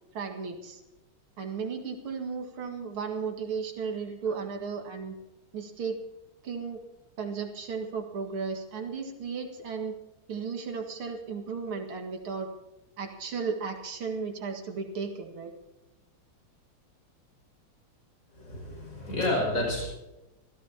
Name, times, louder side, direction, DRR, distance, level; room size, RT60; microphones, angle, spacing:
voice 1, 0.1-0.8 1.4-5.2 5.5-6.0 6.4-6.8 7.2-10.0 10.3-12.5 13.0-15.5, right 5 dB, 85° right, 3 dB, 2.8 m, -35 dB
voice 2, 18.3-19.9, left 1 dB, 40° left, -2 dB, 6.8 m, -30 dB
27.0 x 15.0 x 2.9 m, 1.0 s
omnidirectional pair, 2.3 m